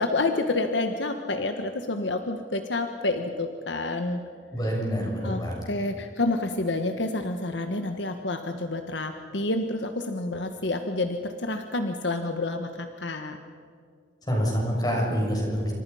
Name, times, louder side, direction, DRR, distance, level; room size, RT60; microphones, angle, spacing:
voice 1, 0.0-4.2 5.2-13.4, left 2 dB, 75° left, 6 dB, 1.3 m, -29 dB
voice 2, 4.5-5.7 14.3-15.7, equal, 20° left, -1 dB, 7.1 m, -26 dB
28.5 x 26.0 x 5.7 m, 2.3 s
head